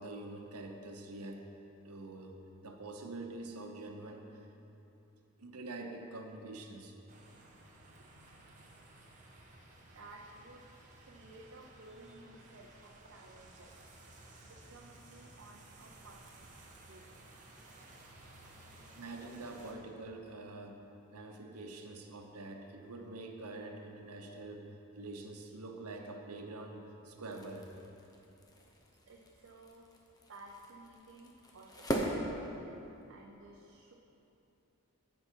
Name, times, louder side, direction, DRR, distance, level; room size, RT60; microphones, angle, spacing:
voice 1, 0.0-1.5 1.8-4.5 5.4-7.0 19.0-20.8 21.1-27.7, right 2 dB, 85° right, 3 dB, 0.9 m, -46 dB
sound 1, 7.1-19.7, right 2 dB, 35° right, 1.2 m, -56 dB
voice 2, 9.8-13.9 14.4-17.2 29.0-29.9 30.3-32.6 33.1-33.9, right 2 dB, 55° right, -1 dB, 0.7 m, -56 dB
sound 2, 27.1-33.1, equal, 15° left, 0.7 m, -41 dB
15.5 x 5.5 x 4.5 m, 2.9 s
head